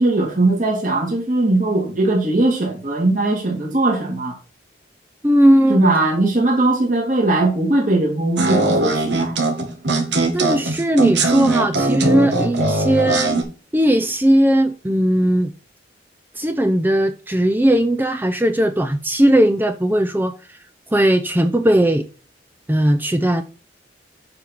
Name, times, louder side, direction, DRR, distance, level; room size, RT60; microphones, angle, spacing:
voice 1, 0.0-4.4 5.7-9.4, right 2 dB, 45° right, 2.6 m, -19 dB
voice 2, 5.2-5.8 10.3-13.4 13.7-15.5 16.4-20.3 20.9-22.0 22.7-23.4, right 1 dB, 10° right, 0.5 m, -17 dB
sound 1, 8.4-13.4, right 2 dB, 75° right, 2.1 m, -20 dB
8.7 x 5.5 x 4.5 m
head